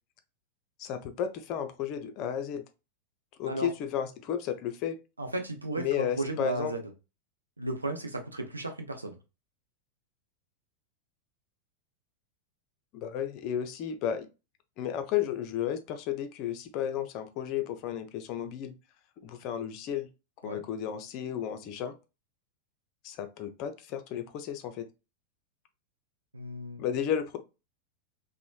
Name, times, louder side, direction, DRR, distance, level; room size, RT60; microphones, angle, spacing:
voice 1, 0.8-2.6 3.4-5.0 5.8-6.7 12.9-14.3 14.8-18.7 19.2-20.1 20.4-21.9 23.0-24.9 26.8-27.4, left 9 dB, 40° left, 0.4 m, -33 dB
voice 2, 5.2-6.8 7.6-9.1 20.4-20.6 26.3-26.8, right 2 dB, 80° right, 0.5 m, -34 dB
3.0 x 2.1 x 2.3 m
figure-of-eight pair, 90°, 0 cm